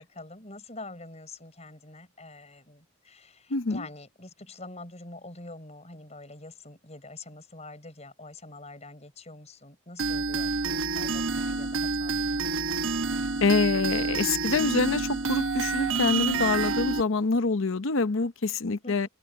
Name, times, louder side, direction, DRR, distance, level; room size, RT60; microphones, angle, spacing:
voice 1, 0.0-12.8 18.8-19.1, left 2 dB, 30° left, 6.7 m, -45 dB
voice 2, 3.5-3.9 13.4-19.1, left 3 dB, 65° left, 0.8 m, -26 dB
sound 1, 10.0-17.0, right 4 dB, 65° right, 1.2 m, -28 dB
open air
head